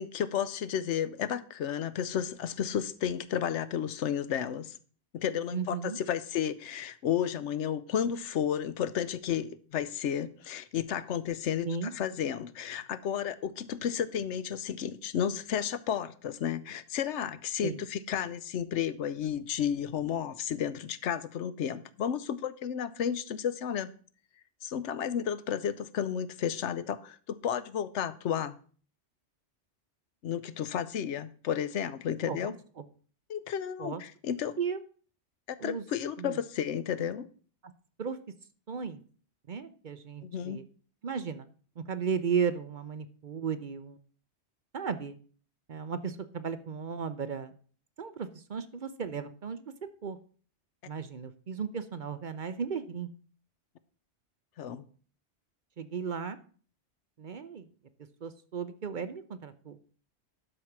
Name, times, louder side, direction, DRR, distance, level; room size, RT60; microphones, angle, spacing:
voice 1, 0.0-4.8 5.1-23.9 24.6-28.6 30.2-32.5 33.3-34.6 35.5-37.3 40.2-40.6 54.6-54.8, left 9 dB, 80° left, 15 dB, 1.0 m, -32 dB
voice 2, 5.5-6.0 11.6-11.9 17.6-17.8 32.3-32.8 33.8-34.0 34.6-34.8 35.6-35.8 36.2-36.4 37.6-37.7 38.0-38.2 38.7-39.0 39.5-40.6 41.0-41.5 41.8-44.0 44.7-45.2 45.7-47.5 48.0-49.7 50.0-50.2 50.9-53.1 55.8-56.4 57.2-57.7 58.2-59.8, right 6 dB, 50° right, 12 dB, 0.7 m, -35 dB
12.0 x 4.8 x 5.9 m, 0.43 s
omnidirectional pair, 1.2 m